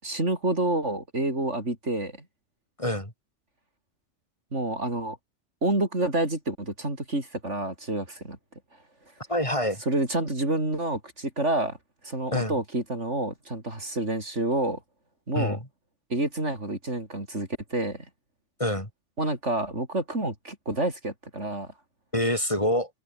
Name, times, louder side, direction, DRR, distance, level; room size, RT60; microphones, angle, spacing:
voice 1, 0.0-2.1 4.5-5.2 5.6-8.4 9.9-11.8 12.0-14.8 15.3-15.6 16.1-18.0 19.2-21.7, right 2 dB, 80° right, 6.3 m, -28 dB
voice 2, 2.8-3.1 9.3-9.8 12.3-12.6 15.3-15.6 18.6-18.9 22.1-22.9, equal, 25° left, 7.0 m, -26 dB
omnidirectional pair, 1.2 m